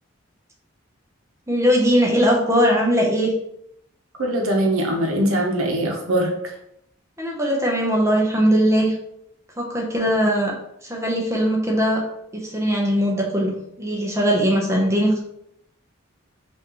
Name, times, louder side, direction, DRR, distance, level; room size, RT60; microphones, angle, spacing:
voice 1, 1.5-3.3 7.2-8.9 9.6-10.5 10.8-12.0 12.3-15.2, equal, 15° right, -1 dB, 0.7 m, -20 dB
voice 2, 4.2-6.5, right 1 dB, 80° right, 1 dB, 0.9 m, -22 dB
5.7 x 2.7 x 3.0 m, 0.77 s
head